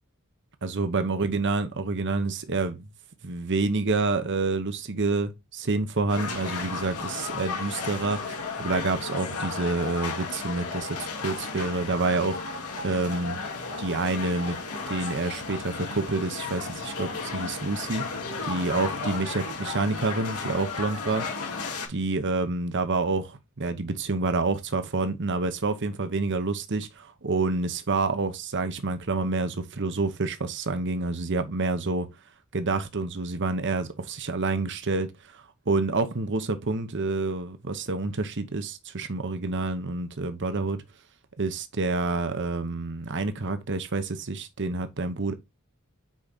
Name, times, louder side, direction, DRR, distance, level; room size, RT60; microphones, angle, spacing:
voice 1, 0.6-2.9 3.2-12.4 12.8-13.4 13.8-14.6 14.9-18.0 18.4-21.5 21.9-32.1 32.5-40.8 41.4-45.3, right 3 dB, 55° right, 1.0 m, -28 dB
sound 1, 6.1-21.9, left 4 dB, 80° left, 2.2 m, -34 dB
6.3 x 4.9 x 4.1 m
head